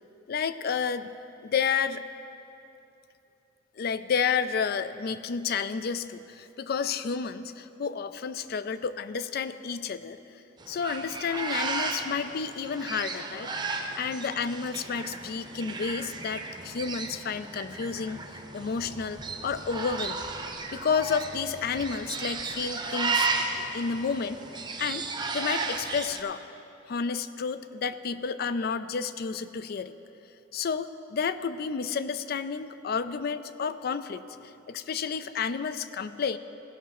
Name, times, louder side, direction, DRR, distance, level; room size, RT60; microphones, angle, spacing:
voice 1, 0.3-1.1 1.4-2.0 3.8-10.2 10.7-13.5 13.9-18.2 18.5-20.3 20.7-23.3 23.7-24.4 24.8-25.1 25.3-26.4 26.9-30.0 30.5-36.4, left 6 dB, 55° left, 13 dB, 0.4 m, -31 dB
sound 1, 10.6-26.2, right 3 dB, 25° right, 0.7 m, -34 dB
16.5 x 5.9 x 5.9 m, 2.8 s
head